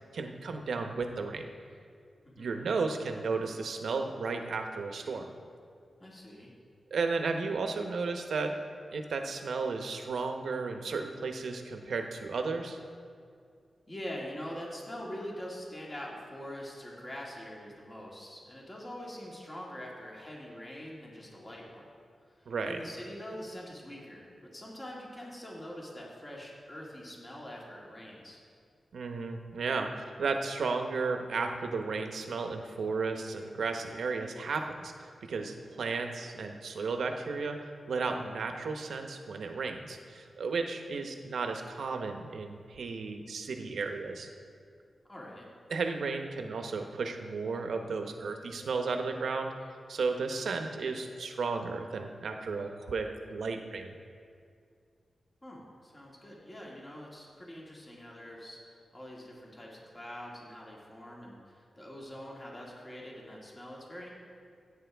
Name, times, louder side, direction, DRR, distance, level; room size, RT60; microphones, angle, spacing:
voice 1, 0.1-1.5 2.4-5.2 6.9-8.5 8.9-12.8 22.5-22.8 28.9-44.3 45.7-49.5 49.9-53.9, right 4 dB, 85° right, 5 dB, 0.9 m, -34 dB
voice 2, 2.2-2.7 6.0-6.5 13.9-21.9 22.4-28.4 45.1-45.5 55.4-64.1, equal, 25° left, -3 dB, 1.9 m, -44 dB
15.0 x 8.8 x 3.5 m, 2.3 s
wide cardioid pair, 105°, 0 cm